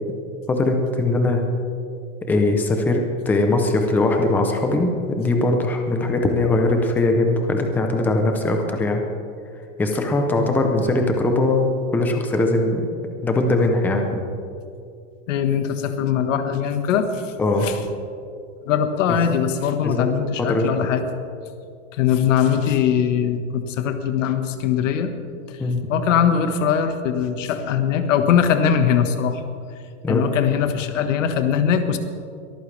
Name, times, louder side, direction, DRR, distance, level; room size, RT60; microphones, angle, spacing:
voice 1, 0.5-1.4 2.3-9.0 9.8-12.8 13.2-14.2 17.4-17.7 19.8-20.1 20.4-20.7 25.6-25.9 30.0-30.3, left 2 dB, 5° left, 4 dB, 0.6 m, -20 dB
voice 2, 15.3-17.2 17.6-17.8 18.6-21.0 21.9-25.1 25.5-25.6 25.9-29.4 30.1-32.0, left 8 dB, 70° left, 8 dB, 1.5 m, -21 dB
22.5 x 14.0 x 3.4 m, 2.5 s
supercardioid pair, 170°, 39 cm